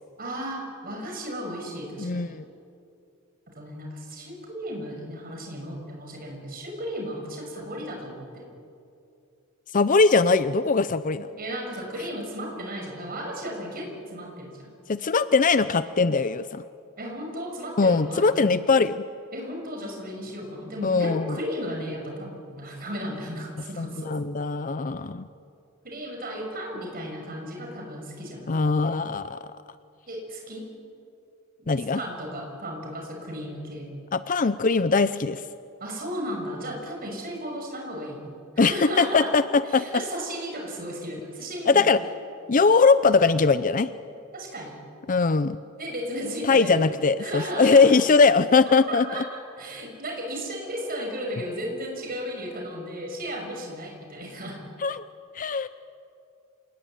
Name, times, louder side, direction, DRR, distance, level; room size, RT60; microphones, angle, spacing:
voice 1, 0.2-2.3 3.5-8.5 11.4-14.7 17.0-18.5 19.3-24.1 25.8-28.5 28.8-29.0 30.1-30.7 31.6-33.9 35.8-39.3 39.7-41.9 42.5-42.6 44.3-44.8 45.8-46.8 47.2-47.9 48.9-54.6, equal, 45° right, 1 dB, 6.2 m, -35 dB
voice 2, 2.0-2.5 9.7-11.3 14.9-16.6 17.8-19.0 20.8-21.4 23.8-25.3 28.5-29.5 31.7-32.0 34.1-35.4 38.6-39.8 41.7-42.0 42.5-43.9 45.1-45.6 46.5-49.2 54.8-55.0 55.3-55.7, left 4 dB, 40° left, 13 dB, 0.6 m, -21 dB
28.0 x 19.5 x 9.0 m, 2.5 s
head